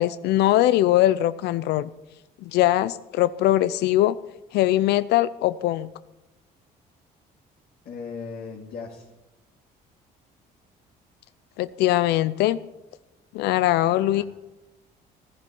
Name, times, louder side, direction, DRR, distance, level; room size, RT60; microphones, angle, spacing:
voice 1, 0.0-1.9 2.4-4.2 4.5-5.9 11.6-12.6 13.3-14.2, left 14 dB, 80° left, 15 dB, 0.5 m, -21 dB
voice 2, 7.8-9.1 14.1-14.2, left 5 dB, 65° left, -3 dB, 2.3 m, -37 dB
15.5 x 12.0 x 6.9 m, 1.0 s
cardioid pair, 110°, 17 cm